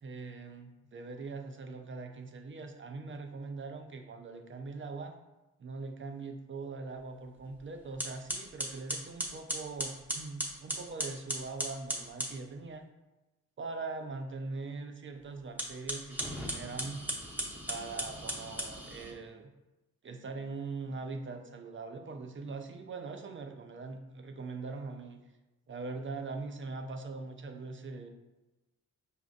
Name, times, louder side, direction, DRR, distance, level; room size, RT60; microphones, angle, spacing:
voice 1, 0.0-5.1 5.6-12.8 13.6-17.0 17.7-19.5 20.0-25.2 25.7-28.1, right 3 dB, 35° right, 5 dB, 0.4 m, -42 dB
sound 1, 7.5-7.6 8.0-12.4 15.5-19.1, equal, 5° right, 0.8 m, -37 dB
4.8 x 2.5 x 2.5 m, 1.0 s
supercardioid pair, 55°, 38 cm